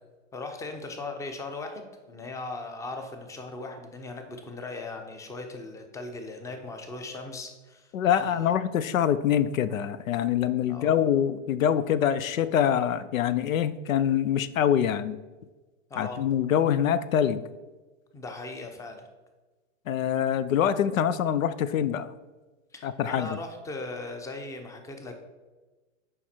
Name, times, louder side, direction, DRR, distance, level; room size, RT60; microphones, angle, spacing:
voice 1, 0.3-7.9 8.2-8.7 10.7-11.0 15.9-16.2 18.1-19.1 22.7-25.2, left 3 dB, 10° left, 5 dB, 0.6 m, -38 dB
voice 2, 7.9-15.2 16.0-17.4 19.9-22.1 22.8-23.4, left 9 dB, 90° left, 16 dB, 0.5 m, -25 dB
7.2 x 5.0 x 4.3 m, 1.2 s
hypercardioid pair, 120°, 39 cm